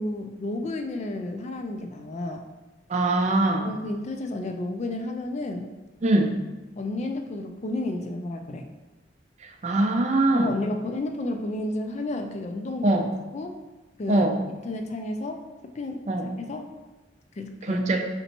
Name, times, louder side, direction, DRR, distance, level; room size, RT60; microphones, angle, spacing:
voice 1, 0.0-2.4 3.6-5.7 6.1-6.2 6.8-8.7 10.3-13.0 13.3-13.6 14.0-14.3 14.6-15.4 15.7-16.0 16.4-16.6 17.4-17.8, left 2 dB, 35° left, 5 dB, 0.4 m, -31 dB
voice 2, 2.9-3.7 6.0-6.4 9.6-10.5 12.8-13.1 14.1-14.4 16.1-16.3 17.6-18.0, right 2 dB, 40° right, 4 dB, 0.4 m, -22 dB
4.3 x 4.0 x 2.9 m, 1.1 s
head